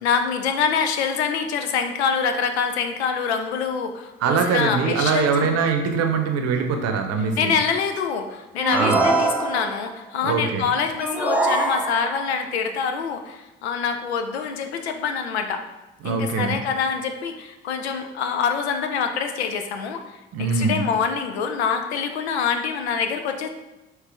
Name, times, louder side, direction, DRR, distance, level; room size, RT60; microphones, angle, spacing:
voice 1, 0.0-5.5 7.4-15.6 16.0-23.5, left 6 dB, 80° left, 6 dB, 0.5 m, -25 dB
voice 2, 4.2-7.6 8.7-9.1 10.2-10.6 16.0-16.6 20.3-20.8, right 5 dB, 50° right, 5 dB, 0.8 m, -22 dB
sound 1, 8.6-9.9 11.0-12.3, right 2 dB, 5° right, 0.6 m, -23 dB
4.7 x 3.3 x 3.4 m, 1.0 s
figure-of-eight pair, 50°, 32 cm